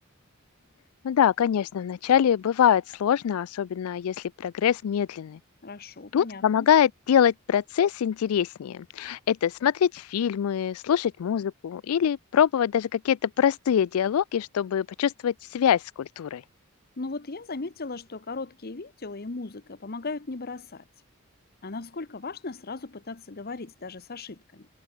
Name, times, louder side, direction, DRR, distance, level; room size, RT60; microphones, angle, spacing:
voice 1, 1.0-5.4 6.1-16.4, left 9 dB, 85° left, 0.4 m, -24 dB
voice 2, 5.6-6.7 17.0-20.8 21.6-24.7, left 3 dB, 45° left, 1.0 m, -37 dB
head